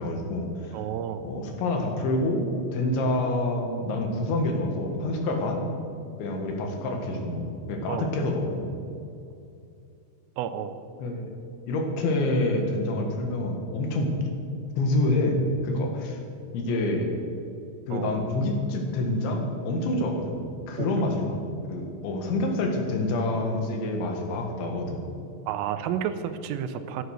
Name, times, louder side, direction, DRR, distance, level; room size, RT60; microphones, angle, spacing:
voice 1, 0.0-0.8 1.2-5.6 6.2-8.7 11.0-11.3 11.7-14.1 14.8-16.2 16.5-17.2 17.9-20.4 20.7-21.4 21.7-25.0, left 2 dB, 70° left, 3 dB, 3.8 m, -27 dB
voice 2, 0.7-1.3 7.9-8.1 10.4-10.8 17.9-18.1 20.8-20.9 25.5-27.0, right 9 dB, 90° right, 10 dB, 3.3 m, -31 dB
15.0 x 11.5 x 6.5 m, 2.5 s
omnidirectional pair, 5.8 m